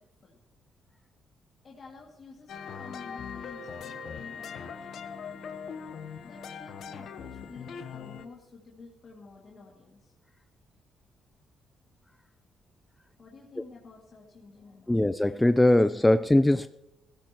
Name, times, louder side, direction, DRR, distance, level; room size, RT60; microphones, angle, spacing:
voice 1, 1.6-4.9 6.2-10.1 12.9-15.0 15.8-16.2, left 4 dB, 45° left, -2 dB, 2.3 m, -50 dB
sound 1, 2.5-8.3, left 6 dB, 70° left, 1.1 m, -41 dB
voice 2, 14.9-16.7, left 1 dB, 10° left, 11 dB, 0.4 m, -21 dB
16.5 x 15.0 x 3.0 m, 0.98 s
cardioid pair, 90°, 0 cm